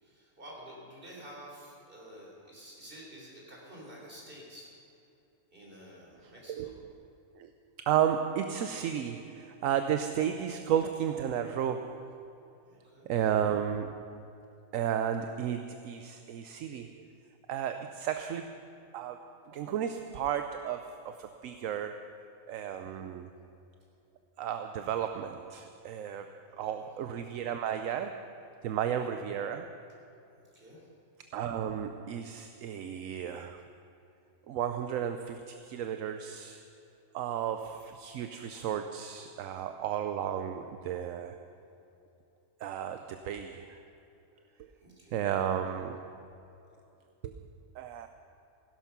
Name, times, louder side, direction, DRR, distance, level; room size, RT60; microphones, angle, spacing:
voice 1, 0.0-4.7 5.5-6.7 12.7-13.1 26.4-26.9 30.5-30.9 41.6-41.7 42.9-43.0 44.8-45.2, equal, 40° right, 3.9 m, -50 dB
voice 2, 6.2-6.8 7.4-7.5 7.9-12.2 13.1-14.2 14.7-17.0 17.5-18.7 18.9-22.2 22.5-23.3 24.4-29.8 31.3-33.7 34.5-36.7 37.1-41.5 42.6-43.8 45.1-46.3 47.2-47.4 47.7-48.1, right 9 dB, 75° right, 1.0 m, -33 dB
16.0 x 11.5 x 6.0 m
omnidirectional pair, 1.5 m